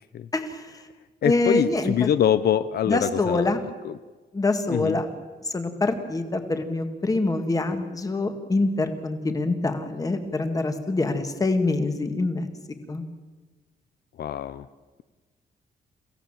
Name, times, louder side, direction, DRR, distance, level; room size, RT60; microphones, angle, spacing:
voice 1, 0.3-0.6 1.2-2.1 2.9-3.6 4.3-5.1 5.5-12.5 12.9-13.0, left 2 dB, 20° left, 7 dB, 1.9 m, -25 dB
voice 2, 1.2-3.5 3.8-3.9 4.7-5.0 14.2-14.7, left 10 dB, 65° left, 13 dB, 0.6 m, -24 dB
29.5 x 16.5 x 7.4 m, 1.3 s
wide cardioid pair, 180°, 17 cm